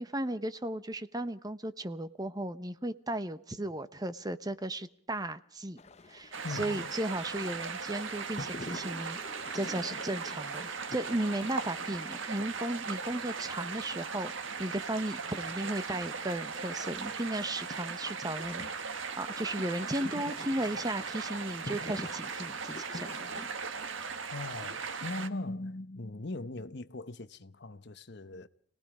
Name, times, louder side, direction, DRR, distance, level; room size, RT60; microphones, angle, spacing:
voice 1, 0.0-5.8 6.1-14.3 14.6-18.9 19.2-23.1, right 1 dB, 20° right, 1.1 m, -35 dB
sound 1, 5.8-23.5, left 2 dB, 35° left, 0.7 m, -48 dB
sound 2, 6.3-25.3, right 5 dB, 70° right, 1.6 m, -38 dB
voice 2, 6.4-6.9 24.3-28.5, left 2 dB, 55° left, 1.0 m, -40 dB
28.0 x 18.5 x 5.0 m
head